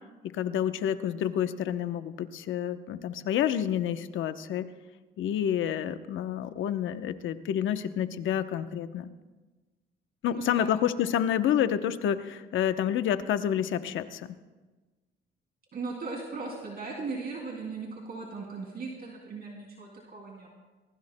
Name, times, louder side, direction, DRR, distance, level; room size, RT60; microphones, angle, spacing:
voice 1, 0.3-4.7 5.2-9.1 10.2-14.4, left 10 dB, 80° left, 10 dB, 0.9 m, -29 dB
voice 2, 10.3-10.8 15.7-20.5, right 4 dB, 50° right, -2 dB, 2.8 m, -38 dB
23.5 x 20.0 x 2.2 m, 1.2 s
cardioid pair, 90°, 20 cm